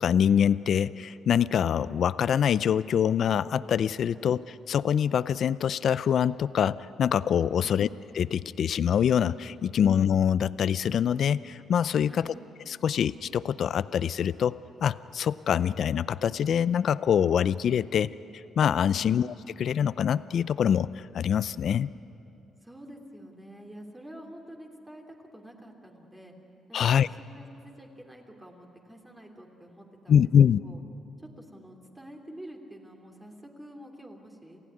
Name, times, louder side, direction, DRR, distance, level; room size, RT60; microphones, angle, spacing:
voice 1, 0.0-4.4 4.7-7.9 8.2-12.3 12.7-18.1 18.6-19.3 19.6-21.9 26.7-27.1 30.1-30.6, left 8 dB, 60° left, 17 dB, 0.5 m, -24 dB
voice 2, 9.6-9.9 12.1-12.4 18.8-19.1 22.6-26.3 26.7-30.3 30.6-30.8 31.4-34.6, right 1 dB, 10° right, 1 dB, 3.2 m, -48 dB
28.0 x 16.0 x 9.9 m, 2.9 s
cardioid pair, 90°, 0 cm